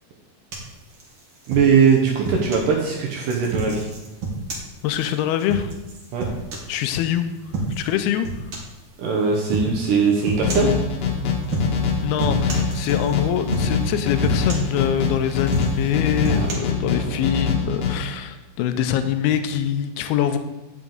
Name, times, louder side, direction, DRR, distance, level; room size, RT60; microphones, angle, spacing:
sound 1, 0.5-2.7 3.2-7.1 7.5-7.9 8.2-8.8 9.5-9.7 10.2-10.8 11.4-11.9 12.2-13.2 13.5-13.9 14.2-15.1 15.4-16.5, right 3 dB, 50° right, 1.6 m, -29 dB
voice 1, 1.5-3.9 6.1-6.3 9.0-10.8 16.3-16.5 17.0-17.2, right 5 dB, 70° right, 0 dB, 2.2 m, -20 dB
voice 2, 4.8-5.7 6.7-7.3 7.7-8.3 8.5-8.6 12.0-20.4, left 10 dB, 85° left, 9 dB, 2.5 m, -24 dB
sound 2, 10.4-17.9, left 5 dB, 65° left, 2.6 m, -23 dB
9.5 x 7.1 x 3.9 m, 1.1 s
omnidirectional pair, 4.5 m